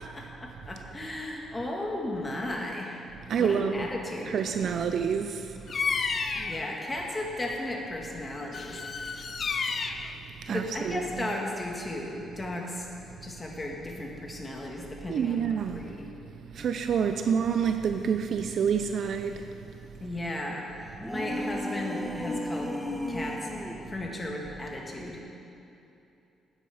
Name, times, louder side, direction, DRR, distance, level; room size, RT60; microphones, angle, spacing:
voice 1, 0.0-3.0 3.4-4.4 6.3-8.8 10.5-12.9 13.2-16.1 20.0-20.6 21.1-22.8 23.1-23.4 23.9-25.2, left 1 dB, 20° left, -1 dB, 1.8 m, -35 dB
voice 2, 3.3-3.9 4.3-5.7 10.4-11.3 15.1-15.9 16.5-19.5, right 7 dB, 60° right, 7 dB, 0.4 m, -28 dB
Bird vocalization bird call bird song, 5.7-6.7 8.5-10.1, left 5 dB, 45° left, 0.6 m, -31 dB
sound 1, 20.9-23.9, left 1 dB, ahead, 0.9 m, -34 dB
9.5 x 9.1 x 5.0 m, 2.9 s
cardioid pair, 90°, 0 cm